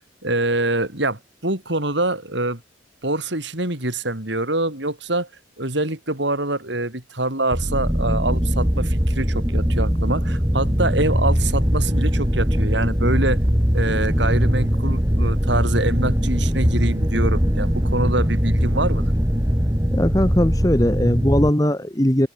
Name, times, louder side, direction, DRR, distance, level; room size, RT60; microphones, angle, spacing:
voice 1, 0.0-2.6 3.0-5.3 5.6-13.4 13.7-19.1, right 2 dB, 65° right, 5.3 m, -25 dB
sound 1, 7.5-21.5, equal, 15° right, 3.3 m, -21 dB
voice 2, 19.9-22.3, equal, 20° left, 1.8 m, -19 dB
head